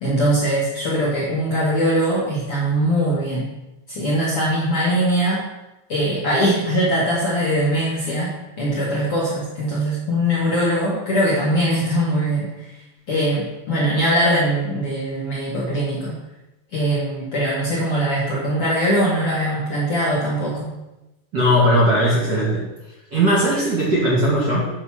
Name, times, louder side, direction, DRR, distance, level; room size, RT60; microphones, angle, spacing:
voice 1, 0.0-3.5 3.9-5.4 5.9-8.3 8.6-12.5 13.1-16.2 16.7-20.7, equal, 65° left, -6 dB, 1.4 m, -21 dB
voice 2, 21.3-22.7 23.1-24.7, equal, 35° right, -7 dB, 2.0 m, -18 dB
7.9 x 5.5 x 5.7 m, 0.99 s
omnidirectional pair, 5.1 m